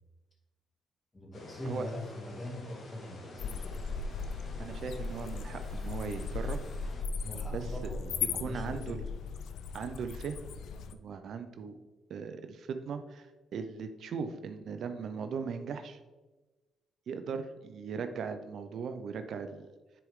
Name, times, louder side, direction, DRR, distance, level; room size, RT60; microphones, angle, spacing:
voice 1, 1.1-3.9 7.2-9.1, left 1 dB, 20° left, -2 dB, 2.4 m, -42 dB
sound 1, 1.3-7.0, left 2 dB, 55° left, 1.9 m, -50 dB
sound 2, 3.4-10.9, left 5 dB, 75° left, 0.5 m, -37 dB
voice 2, 4.6-6.6 7.5-7.6 8.3-9.0 9.7-10.4 11.0-11.7 12.1-13.3 13.5-16.0 17.1-19.7, right 6 dB, 65° right, 8 dB, 0.6 m, -38 dB
9.9 x 4.7 x 3.6 m, 1.2 s
cardioid pair, 90°, 0 cm